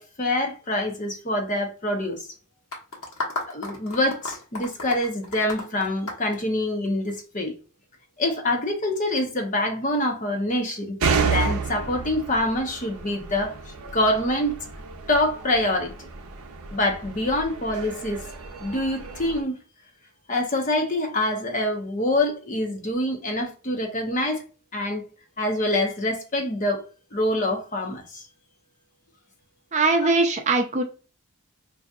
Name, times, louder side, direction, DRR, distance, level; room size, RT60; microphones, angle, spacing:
voice 1, 0.0-2.3 3.5-7.5 8.2-11.0 11.2-14.6 15.1-15.9 16.7-18.2 18.6-19.6 20.3-24.4 24.7-25.0 25.4-26.8 27.1-28.2 30.1-30.2, left 1 dB, 35° left, 0.8 m, -25 dB
sound 1, 2.7-7.1, left 2 dB, 75° left, 1.3 m, -33 dB
sound 2, 11.0-19.4, right 5 dB, 80° right, 0.6 m, -31 dB
voice 2, 29.7-30.8, right 3 dB, 30° right, 0.5 m, -21 dB
4.8 x 2.7 x 2.4 m
head